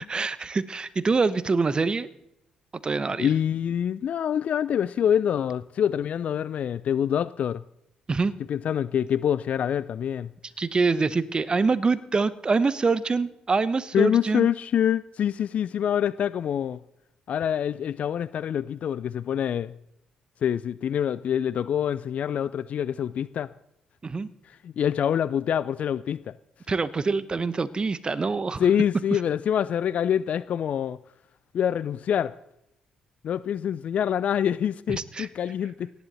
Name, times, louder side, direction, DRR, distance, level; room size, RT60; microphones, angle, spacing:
voice 1, 0.1-2.1 2.8-3.3 8.1-8.3 10.6-14.5 24.0-24.3 26.7-28.6 29.1-29.2 34.9-35.3, right 4 dB, 35° right, 0.9 m, -25 dB
voice 2, 3.2-7.6 8.5-10.3 13.9-16.8 17.3-19.7 20.4-23.5 24.6-26.3 28.6-31.0 31.5-32.4 33.2-35.9, left 9 dB, 55° left, 0.4 m, -26 dB
18.5 x 10.5 x 4.2 m
hypercardioid pair, 50°, 3 cm